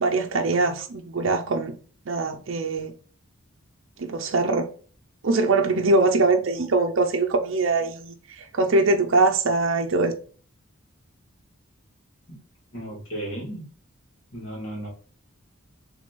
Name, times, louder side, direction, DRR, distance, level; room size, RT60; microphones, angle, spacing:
voice 1, 0.0-1.8 2.1-2.9 4.0-4.7 5.2-10.1, right 3 dB, 60° right, 0.6 m, -22 dB
voice 2, 12.7-13.6 14.3-14.9, right 1 dB, 65° left, 2.5 m, -34 dB
6.1 x 3.4 x 4.6 m
head